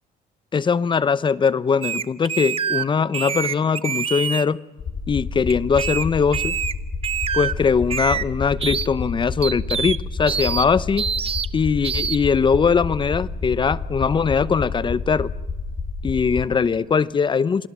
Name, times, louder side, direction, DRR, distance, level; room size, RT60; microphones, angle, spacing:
voice 1, 0.5-4.6 5.1-6.5 7.3-11.1 11.5-15.3 16.0-17.7, left 6 dB, 30° left, 0.7 m, -21 dB
sound 1, 1.8-2.8 3.1-4.5 5.5-6.0 6.3-6.7 7.0-7.5 7.9-8.2 8.6-8.9 9.4-10.0 10.3-10.7 11.0-11.5 11.8-12.2, right 7 dB, 35° right, 0.9 m, -25 dB
sound 2, 4.8-16.4, left 4 dB, 45° left, 5.5 m, -30 dB
28.5 x 20.0 x 7.5 m
cardioid pair, 110°, 17 cm